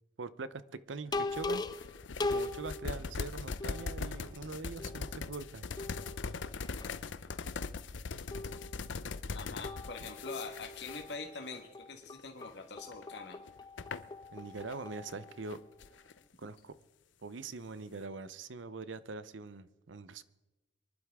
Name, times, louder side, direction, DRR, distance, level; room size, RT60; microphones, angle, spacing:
voice 1, 0.2-0.6 0.9-1.6 2.2-5.7 8.1-8.2 14.3-15.6 16.4-16.7 17.2-20.2, right 3 dB, 90° right, 0.7 m, -43 dB
sound 1, 1.1-3.0 3.6-4.4 4.8-5.4 5.8-7.0 8.3-9.1 9.6-15.9, left 2 dB, 20° left, 0.4 m, -41 dB
sound 2, 1.3-11.6 12.0-12.3 12.9-14.8 15.1-16.2, left 4 dB, 85° left, 0.6 m, -41 dB
voice 2, 9.3-13.4, left 3 dB, 65° left, 1.6 m, -44 dB
24.0 x 11.5 x 3.6 m
head